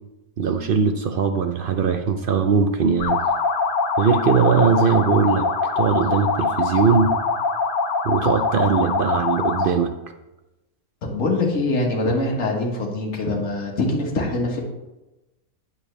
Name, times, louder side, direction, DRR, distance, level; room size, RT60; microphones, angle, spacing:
voice 1, 0.4-3.2 4.0-5.5 5.8-7.1 8.0-9.9, right 6 dB, 70° right, 7 dB, 0.5 m, -20 dB
sound 1, 3.0-9.8, left 4 dB, 90° left, 1.2 m, -23 dB
voice 2, 11.0-14.6, left 2 dB, 65° left, -1 dB, 1.7 m, -23 dB
8.5 x 6.9 x 3.3 m, 0.99 s
omnidirectional pair, 1.5 m